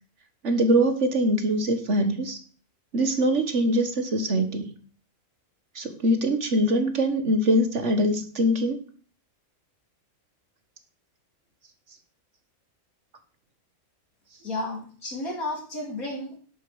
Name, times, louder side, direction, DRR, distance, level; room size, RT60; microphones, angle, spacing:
voice 1, 0.4-2.4 2.9-4.7 5.7-8.8, right 1 dB, 55° right, 8 dB, 1.8 m, -23 dB
voice 2, 14.4-16.4, left 2 dB, 70° left, 1 dB, 4.1 m, -32 dB
11.0 x 8.4 x 6.4 m, 0.44 s
omnidirectional pair, 1.5 m